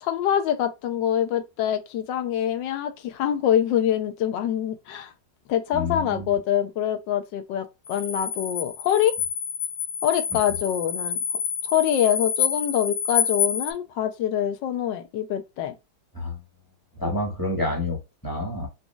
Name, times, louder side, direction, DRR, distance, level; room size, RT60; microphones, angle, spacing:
voice 1, 0.0-5.1 5.5-9.2 10.0-11.2 11.6-15.7, left 10 dB, 80° left, 1.3 m, -25 dB
voice 2, 5.7-6.2 16.1-16.4 17.0-18.7, left 2 dB, 15° left, 1.2 m, -28 dB
sound 1, 7.8-13.7, left 7 dB, 50° left, 0.7 m, -28 dB
4.1 x 2.7 x 2.2 m
omnidirectional pair, 2.0 m